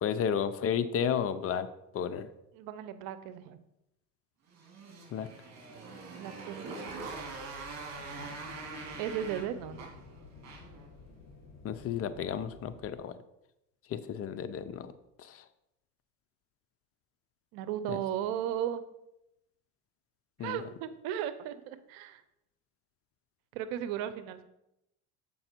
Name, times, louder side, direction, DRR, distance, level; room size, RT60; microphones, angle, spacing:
voice 1, 0.0-1.7 1.9-2.3 5.1-5.3 11.6-13.1 13.9-14.9 15.2-15.4 17.9-18.0 20.4-20.6, left 8 dB, 40° left, 12 dB, 0.6 m, -32 dB
voice 2, 2.5-3.6 6.1-7.1 9.0-9.9 17.5-18.8 20.4-22.2 23.5-24.4, right 10 dB, 70° right, 13 dB, 0.8 m, -36 dB
Motorcycle, 4.5-10.9, right 3 dB, 45° right, 2.4 m, -43 dB
sound 1, 6.9-12.8, left 4 dB, 60° left, 2.3 m, -52 dB
7.8 x 5.4 x 4.5 m, 0.86 s
supercardioid pair, 100°, 38 cm